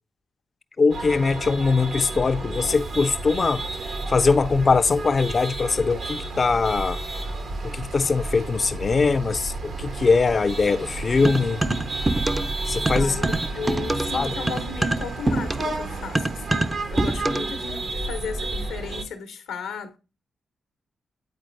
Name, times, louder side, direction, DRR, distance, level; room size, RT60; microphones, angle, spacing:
voice 1, 0.8-3.6 4.1-7.0 7.6-11.6 12.7-13.2 14.1-14.3, left 4 dB, 50° left, 0.4 m, -21 dB
sound 1, 0.9-19.0, right 2 dB, 75° right, 1.1 m, -31 dB
sound 2, 11.2-12.6 12.8-17.6, right 2 dB, 25° right, 0.4 m, -25 dB
voice 2, 12.9-20.0, left 5 dB, 90° left, 0.9 m, -35 dB
8.8 x 4.3 x 2.5 m
supercardioid pair, 45°, 0 cm